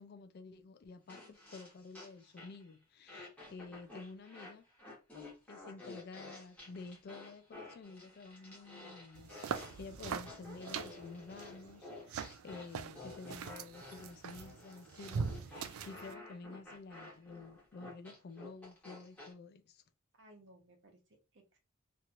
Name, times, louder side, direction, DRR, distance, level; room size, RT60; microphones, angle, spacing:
voice 1, 0.0-4.7 5.5-19.8, left 3 dB, 50° left, 0.3 m, -51 dB
sound 1, 1.1-2.7 3.1-19.3, left 2 dB, 5° left, 1.3 m, -52 dB
voice 2, 1.2-1.5 3.5-3.8 20.1-21.6, right 1 dB, 60° right, 1.0 m, -63 dB
sound 2, 9.1-16.1, right 6 dB, 85° right, 0.4 m, -43 dB
2.9 x 2.8 x 2.4 m
head